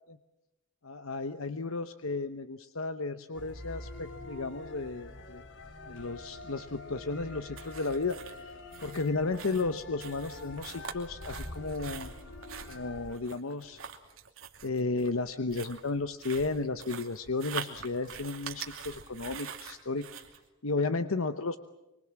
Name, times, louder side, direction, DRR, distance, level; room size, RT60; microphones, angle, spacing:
voice 1, 0.8-5.4 5.9-8.4 8.8-12.1 12.7-13.8 14.6-20.1 20.6-21.6, left 3 dB, 85° left, 10 dB, 1.0 m, -33 dB
sound 1, 3.3-13.2, left 2 dB, 60° left, 2.4 m, -45 dB
sound 2, 7.6-20.4, right 7 dB, 80° right, 2.8 m, -44 dB
25.5 x 25.5 x 7.6 m, 0.95 s
head